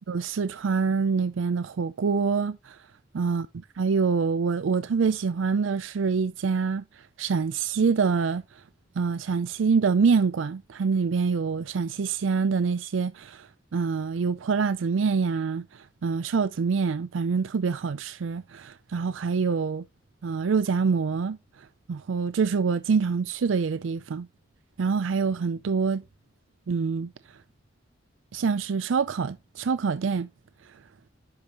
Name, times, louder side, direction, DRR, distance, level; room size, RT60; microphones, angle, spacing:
voice 1, 0.1-2.8 3.1-3.5 3.8-6.8 7.2-8.4 9.0-13.5 13.7-19.8 20.2-21.4 21.9-24.3 24.8-26.0 26.7-27.1 28.3-30.3, right 5 dB, 80° right, 0.4 m, -25 dB
10.5 x 5.3 x 2.9 m
head